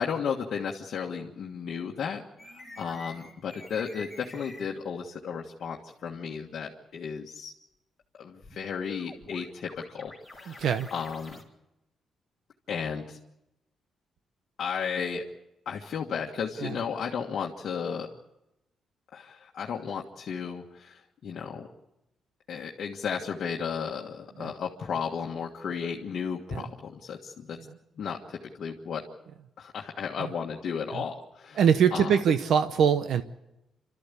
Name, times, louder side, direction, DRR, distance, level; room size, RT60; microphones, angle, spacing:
voice 1, 0.0-7.5 8.2-10.7 10.9-11.4 12.7-13.2 14.6-15.2 15.6-18.1 19.1-21.7 22.5-27.6 28.0-29.0 29.6-31.6 31.9-32.1, left 6 dB, 50° left, 0 dB, 1.6 m, -34 dB
sound 1, 2.4-4.7 8.4-11.4, left 1 dB, 5° right, 3.7 m, -48 dB
voice 2, 10.5-10.9 16.6-16.8 24.4-24.5 26.5-26.6 27.6-27.7 30.2-30.3 30.9-31.0 31.5-33.2, right 7 dB, 60° right, 10 dB, 0.9 m, -24 dB
29.0 x 13.5 x 8.4 m, 0.92 s
cardioid pair, 155°, 0 cm